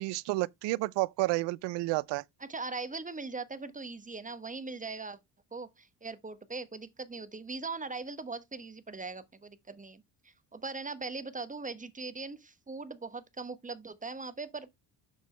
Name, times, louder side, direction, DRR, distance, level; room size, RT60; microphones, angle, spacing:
voice 1, 0.0-2.2, right 20 dB, 70° right, 0.6 m, -30 dB
voice 2, 2.5-5.2 5.5-14.7, right 3 dB, 15° right, 1.1 m, -40 dB
6.9 x 6.3 x 3.3 m
supercardioid pair, 80°, 44 cm